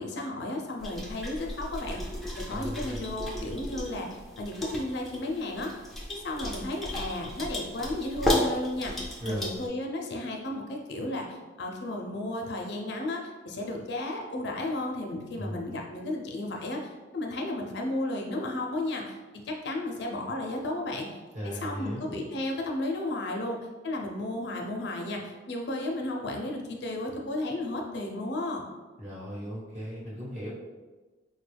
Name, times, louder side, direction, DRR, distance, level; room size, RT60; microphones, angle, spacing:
voice 1, 0.0-2.0 2.5-5.7 6.1-19.2 19.4-21.2 21.4-23.6 23.8-28.6, left 1 dB, 55° left, 1 dB, 0.5 m, -33 dB
sound 1, 0.8-9.7, left 1 dB, ahead, 0.4 m, -34 dB
voice 2, 2.5-3.0 9.2-9.6 15.4-15.6 21.3-22.1 29.0-30.5, equal, 35° right, -6 dB, 1.1 m, -37 dB
4.4 x 2.2 x 3.3 m, 1.3 s
head